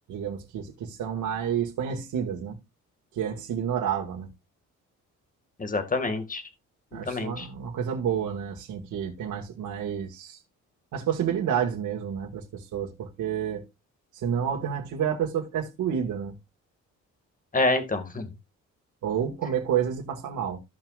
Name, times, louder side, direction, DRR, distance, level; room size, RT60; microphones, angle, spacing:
voice 1, 0.1-2.6 3.2-4.3 6.9-10.4 10.9-13.7 14.1-16.3 19.0-20.6, right 8 dB, 75° right, 1.9 m, -29 dB
voice 2, 5.6-6.4 6.9-7.5 17.5-18.3, left 3 dB, 25° left, 2.0 m, -27 dB
15.0 x 6.0 x 2.4 m
cardioid pair, 90°, 30 cm